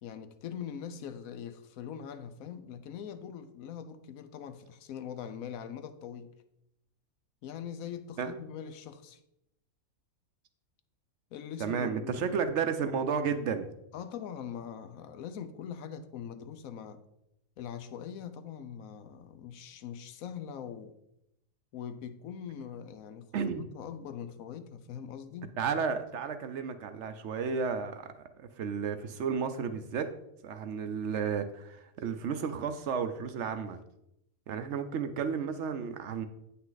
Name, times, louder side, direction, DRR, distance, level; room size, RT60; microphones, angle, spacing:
voice 1, 0.0-6.3 7.4-9.2 11.3-12.4 13.9-17.0 17.6-21.0 21.7-25.6, left 8 dB, 80° left, 1.1 m, -42 dB
voice 2, 11.6-13.7 23.3-23.7 25.6-30.1 30.4-33.8 34.5-36.3, right 6 dB, 65° right, 0.8 m, -32 dB
8.6 x 5.7 x 3.9 m
omnidirectional pair, 1.5 m